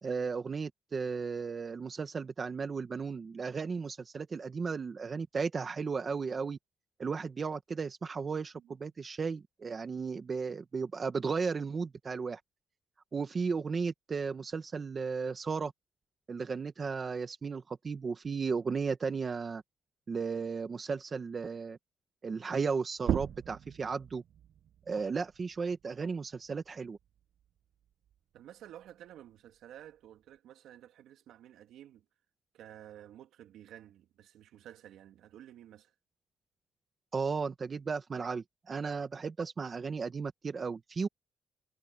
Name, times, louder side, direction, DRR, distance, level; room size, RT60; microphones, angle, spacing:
voice 1, 0.0-6.6 7.0-12.4 13.1-15.7 16.3-19.6 20.1-21.8 22.2-24.2 24.9-27.0 37.1-41.1, right 5 dB, 30° right, 1.2 m, -35 dB
sound 1, 23.0-28.2 28.6-30.4, right 10 dB, 55° right, 0.5 m, -40 dB
voice 2, 28.3-32.0 32.5-35.9, right 11 dB, 80° right, 3.2 m, -52 dB
cardioid pair, 150°, 0 cm